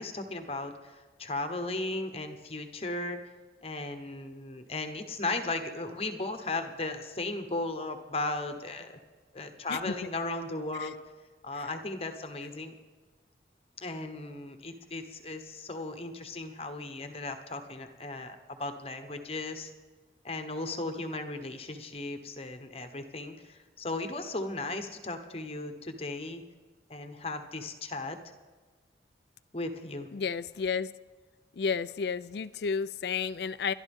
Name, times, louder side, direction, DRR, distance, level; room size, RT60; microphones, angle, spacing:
voice 1, 0.0-3.2 3.6-9.0 9.3-11.0 11.4-12.7 13.8-19.7 20.2-26.4 26.9-28.2 29.5-30.1, left 2 dB, 35° left, 7 dB, 1.0 m, -36 dB
voice 2, 9.7-10.1 10.8-10.9 11.6-11.7 30.1-30.9 31.6-33.7, left 5 dB, 65° left, 15 dB, 0.4 m, -32 dB
29.5 x 11.5 x 3.6 m, 1.3 s
head